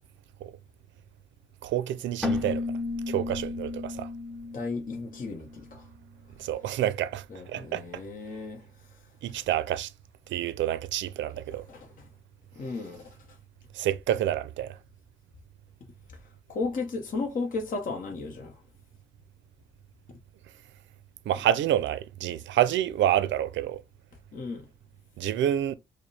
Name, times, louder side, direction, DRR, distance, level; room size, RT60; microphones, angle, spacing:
voice 1, 1.6-2.6 3.1-4.1 6.4-7.8 9.2-9.9 10.3-11.6 13.8-14.7 21.3-23.8 25.2-25.8, right 11 dB, 70° right, 0.5 m, -28 dB
Keyboard (musical), 2.2-5.8, left 3 dB, ahead, 0.7 m, -34 dB
voice 2, 4.5-5.9 7.3-9.0 11.7-12.1 12.5-13.2 16.5-18.6 24.3-24.7, left 3 dB, 45° left, 0.9 m, -35 dB
4.9 x 2.1 x 3.2 m
cardioid pair, 90°, 20 cm